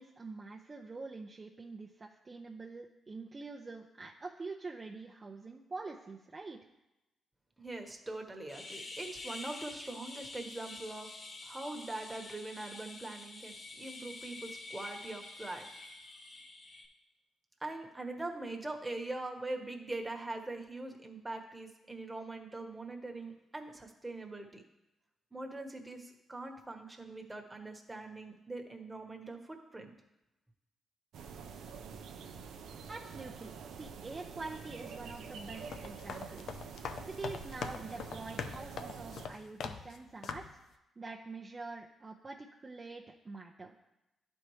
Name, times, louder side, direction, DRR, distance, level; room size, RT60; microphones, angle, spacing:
voice 1, 0.0-6.6 32.9-36.6 37.0-40.5 41.0-43.8, right 3 dB, 35° right, -1 dB, 0.7 m, -45 dB
voice 2, 7.6-11.1 11.4-15.8 17.6-24.6 25.3-29.9, right 2 dB, 15° right, 3 dB, 1.3 m, -42 dB
sound 1, 8.5-16.9, left 2 dB, 50° left, 1.1 m, -47 dB
sound 2, 31.1-39.3, right 6 dB, 80° right, 0.6 m, -47 dB
sound 3, 35.5-40.0 40.2-40.6, left 6 dB, 70° left, 0.5 m, -42 dB
11.0 x 4.4 x 3.2 m, 0.96 s
supercardioid pair, 60°, 0 cm